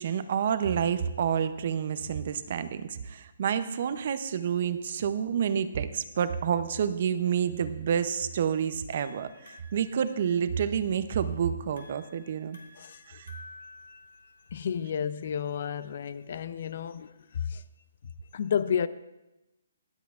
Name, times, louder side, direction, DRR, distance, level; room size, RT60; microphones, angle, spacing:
voice 1, 0.0-12.6 13.1-13.3, right 8 dB, 40° right, 0.6 m, -29 dB
sound 1, 8.3-17.0, left 3 dB, 75° left, 2.3 m, -54 dB
voice 2, 14.5-17.6 18.3-18.9, left 8 dB, 45° left, 0.4 m, -31 dB
24.0 x 8.2 x 2.4 m
hypercardioid pair, 170°, 0 cm